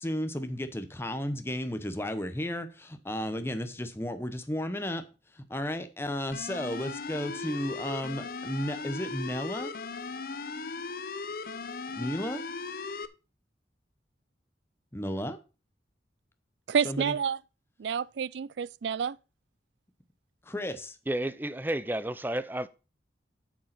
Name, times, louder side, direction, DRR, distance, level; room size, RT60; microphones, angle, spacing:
voice 1, 0.0-5.0 5.4-9.7 12.0-12.4 14.9-15.4 16.8-17.2 20.5-21.0, equal, 15° left, 0.8 m, -33 dB
sound 1, 6.3-13.1, left 4 dB, 50° left, 0.6 m, -38 dB
voice 2, 16.7-17.4 17.8-19.1, right 7 dB, 75° right, 0.4 m, -29 dB
voice 3, 21.1-22.7, right 1 dB, 10° right, 0.5 m, -31 dB
8.3 x 6.6 x 5.8 m
head